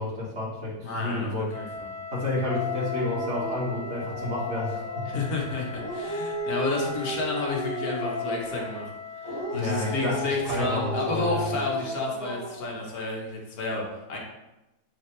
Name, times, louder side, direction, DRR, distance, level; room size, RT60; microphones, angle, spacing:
voice 1, 0.0-1.5 2.1-5.0 9.5-11.5, left 2 dB, 45° right, -5 dB, 2.2 m, -30 dB
voice 2, 0.8-1.9 5.1-8.9 9.2-14.2, left 3 dB, 65° left, -1 dB, 1.8 m, -31 dB
Wind instrument woodwind instrument, 1.5-10.4, left 5 dB, 30° left, 1.9 m, -40 dB
Dog, 2.5-5.3 5.7-8.8 9.2-12.8, left 1 dB, 10° left, 1.8 m, -33 dB
9.9 x 4.0 x 3.3 m, 0.99 s
omnidirectional pair, 1.7 m